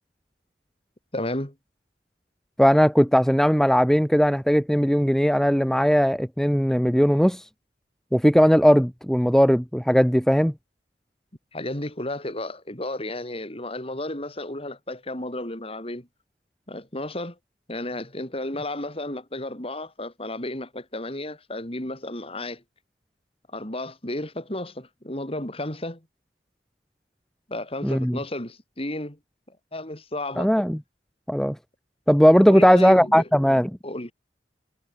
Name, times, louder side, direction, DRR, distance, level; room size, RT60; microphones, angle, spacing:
voice 1, 1.1-1.5 11.5-16.1 16.7-17.4 17.7-22.6 23.5-26.0 27.5-29.2 29.5-30.5 32.5-33.3 33.8-34.1, left 1 dB, 30° left, 4.5 m, -33 dB
voice 2, 2.6-7.4 8.1-10.5 27.8-28.2 30.4-30.8 31.3-31.6 32.1-33.7, equal, 5° left, 2.2 m, -18 dB
head